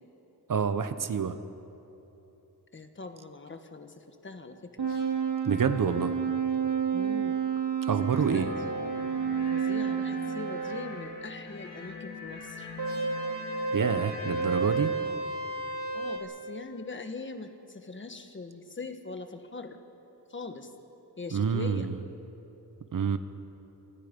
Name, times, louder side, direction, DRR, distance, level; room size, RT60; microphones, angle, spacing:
voice 1, 0.5-1.4 5.4-6.2 7.8-8.5 13.7-14.9 21.3-21.9 22.9-23.2, right 6 dB, 50° right, 11 dB, 1.0 m, -27 dB
voice 2, 2.7-4.9 6.9-7.4 8.1-8.9 9.5-12.7 15.0-15.2 15.9-19.8 20.3-20.7 21.2-21.9, left 3 dB, 30° left, 7 dB, 1.4 m, -42 dB
sound 1, 4.8-10.9 12.8-16.2, right 5 dB, 90° right, 4.4 m, -30 dB
sound 2, 8.1-14.8, left 5 dB, 55° left, 5.1 m, -43 dB
27.0 x 26.5 x 5.3 m, 3.0 s
wide cardioid pair, 175°, 40 cm